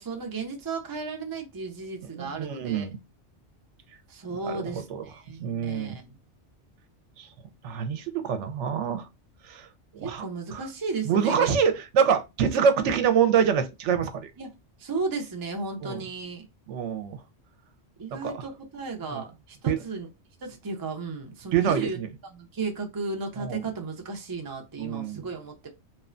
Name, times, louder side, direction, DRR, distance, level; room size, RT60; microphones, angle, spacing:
voice 1, 0.0-2.9 4.1-6.2 10.0-11.5 14.4-14.5 14.8-16.4 18.0-20.1 20.4-22.0 22.3-25.7, right 4 dB, 30° right, 0.4 m, -34 dB
voice 2, 2.1-3.0 4.4-5.0 5.4-6.0 7.2-7.3 7.6-9.1 9.4-9.7 9.9-10.3 10.5-10.7 11.0-14.3 15.8-16.0 16.7-17.2 18.1-18.4 19.1-19.2 19.7-19.8 21.5-22.1 23.4-23.6 24.8-25.3, right 7 dB, 80° right, 0.9 m, -26 dB
2.9 x 2.1 x 2.4 m
omnidirectional pair, 1.2 m